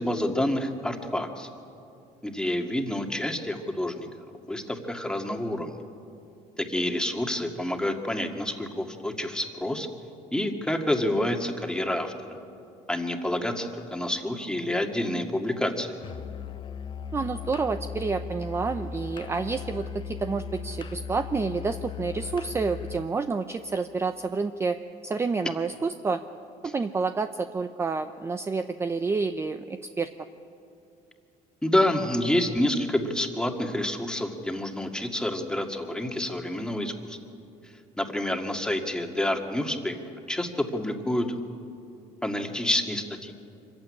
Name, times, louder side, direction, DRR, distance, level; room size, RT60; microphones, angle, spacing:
voice 1, 0.0-1.5 2.2-4.1 4.5-5.8 6.6-9.9 10.3-12.1 12.9-16.0 26.6-26.7 31.6-37.2 38.0-40.0 40.3-41.4 42.2-43.3, left 1 dB, 5° left, 4 dB, 1.9 m, -28 dB
Musical instrument, 16.0-23.1, left 6 dB, 35° left, 0.8 m, -37 dB
voice 2, 17.1-24.8 25.0-26.2 26.6-30.1, right 4 dB, 20° right, 9 dB, 0.6 m, -29 dB
25.0 x 15.0 x 9.7 m, 2.7 s
cardioid pair, 125°, 14 cm